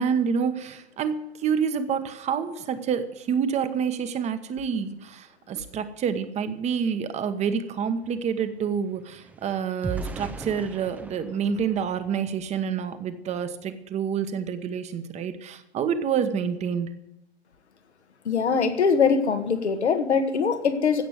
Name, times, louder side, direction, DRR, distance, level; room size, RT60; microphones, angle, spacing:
voice 1, 0.0-17.0, right 7 dB, 20° right, 11 dB, 1.1 m, -28 dB
sound 1, 6.9-7.0 7.3-12.7 13.3-13.5 13.8-14.1, right 3 dB, 5° right, 0.6 m, -40 dB
voice 2, 18.3-21.1, left 5 dB, 80° left, 8 dB, 1.8 m, -22 dB
16.0 x 6.7 x 9.4 m, 0.86 s
hypercardioid pair, 120°, 33 cm